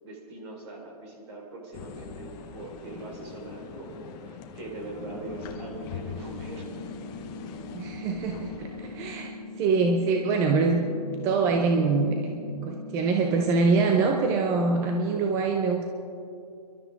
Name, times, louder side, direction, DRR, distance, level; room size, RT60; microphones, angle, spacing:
voice 1, 0.0-6.7, right 2 dB, 40° right, -1 dB, 4.1 m, -41 dB
sound 1, 1.7-9.2, left 7 dB, 20° left, 0.7 m, -42 dB
sound 2, 5.0-15.0, left 2 dB, 60° right, 3.2 m, -41 dB
voice 2, 7.7-9.3 9.6-10.8 11.2-15.9, right 4 dB, 15° right, 3 dB, 0.5 m, -24 dB
27.0 x 12.0 x 3.5 m, 2.6 s
hypercardioid pair, 150°, 21 cm